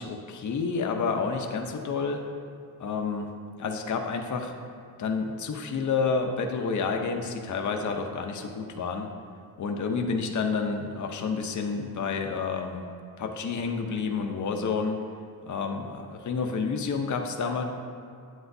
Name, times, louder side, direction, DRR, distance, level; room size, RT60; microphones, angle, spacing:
voice 1, 0.0-2.2 2.8-3.3 3.6-4.5 5.0-9.1 9.6-12.9 13.2-15.0 15.4-17.6, left 5 dB, 55° left, 4 dB, 0.8 m, -29 dB
9.1 x 8.0 x 2.7 m, 2.4 s
wide cardioid pair, 115°, 36 cm